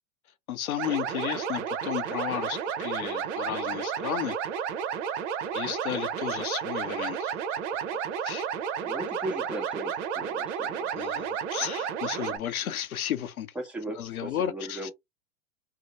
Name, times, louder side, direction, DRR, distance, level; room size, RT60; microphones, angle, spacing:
voice 1, 0.5-4.4 5.5-7.3 7.9-8.0 8.2-8.5 11.0-13.5 14.0-14.9, left 11 dB, 85° left, 0.6 m, -33 dB
sound 1, 0.8-12.4, right 7 dB, 60° right, 0.7 m, -32 dB
voice 2, 8.8-10.9 12.2-12.4 13.5-14.9, right 1 dB, 5° right, 0.9 m, -37 dB
2.7 x 2.0 x 2.9 m
hypercardioid pair, 100°, 41 cm